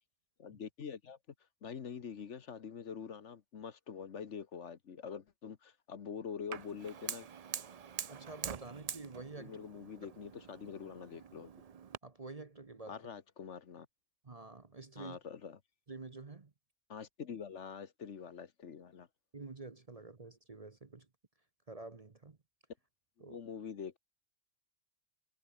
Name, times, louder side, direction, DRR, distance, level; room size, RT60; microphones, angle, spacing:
voice 1, 0.4-1.2 1.6-7.3 9.4-11.5 12.9-13.9 15.0-15.6 16.9-19.1 23.2-24.0, left 7 dB, 60° left, 1.4 m, -45 dB
Fire, 6.5-12.0, right 7 dB, 45° right, 0.5 m, -45 dB
voice 2, 8.1-9.6 10.0-10.1 12.0-13.0 14.2-15.2 15.9-16.5 19.3-21.1 21.7-22.4 23.2-23.4, right 3 dB, 30° right, 1.0 m, -48 dB
omnidirectional pair, 1.4 m